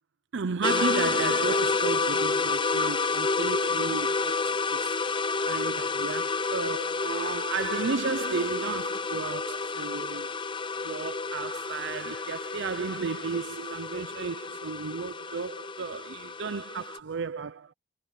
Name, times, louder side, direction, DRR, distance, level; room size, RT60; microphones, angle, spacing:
voice 1, 0.3-5.0 5.5-10.3 10.8-17.7, right 5 dB, 60° right, 0.6 m, -33 dB
sound 1, 0.6-17.0, left 4 dB, 25° left, 0.6 m, -29 dB
head